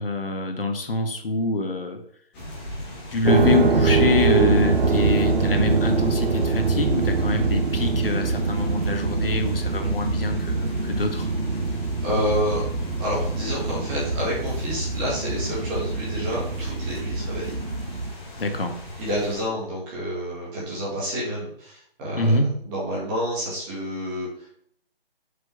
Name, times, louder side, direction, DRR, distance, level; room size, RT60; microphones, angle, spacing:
voice 1, 0.0-2.0 3.1-11.3 18.4-18.8 22.2-22.5, left 2 dB, 65° left, 5 dB, 1.9 m, -25 dB
sound 1, 2.3-19.4, left 1 dB, 10° left, 1.9 m, -39 dB
sound 2, 3.2-18.1, right 4 dB, 70° right, 1.3 m, -24 dB
voice 2, 12.0-12.6 13.0-17.5 19.0-22.3 22.6-24.5, equal, 10° right, -6 dB, 1.9 m, -29 dB
7.9 x 5.5 x 7.1 m, 0.66 s
hypercardioid pair, 170°, 30 cm